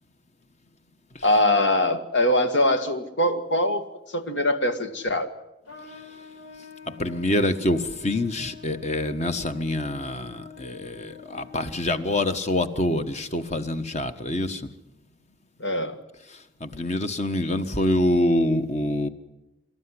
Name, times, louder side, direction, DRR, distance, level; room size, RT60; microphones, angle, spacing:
voice 1, 1.2-5.3 15.6-16.0, left 1 dB, 70° left, 1.8 m, -23 dB
Trumpet, 5.6-12.2, left 6 dB, 85° left, 5.0 m, -45 dB
voice 2, 6.9-14.7 16.3-19.1, left 1 dB, 35° left, 1.3 m, -26 dB
25.0 x 13.5 x 9.9 m
head